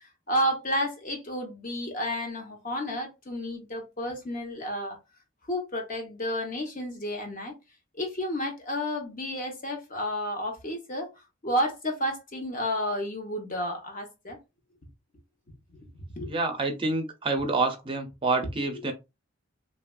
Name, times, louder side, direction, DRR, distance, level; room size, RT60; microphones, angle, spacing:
voice 1, 0.3-5.0 5.5-7.5 8.0-11.1 11.4-14.4 16.2-16.3, equal, 40° left, 0.8 m, -31 dB
voice 2, 16.3-18.9, right 3 dB, 25° right, 0.5 m, -27 dB
3.1 x 2.4 x 2.2 m
head